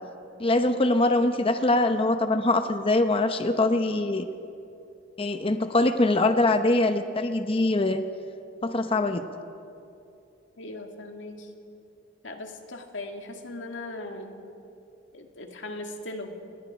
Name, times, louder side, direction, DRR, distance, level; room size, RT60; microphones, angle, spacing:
voice 1, 0.4-4.3 5.2-8.0 8.6-9.2, left 2 dB, 30° left, 8 dB, 0.8 m, -23 dB
voice 2, 10.6-11.5 12.2-14.4 15.1-16.4, left 2 dB, 85° left, 3 dB, 2.2 m, -38 dB
28.0 x 20.5 x 5.0 m, 2.7 s
head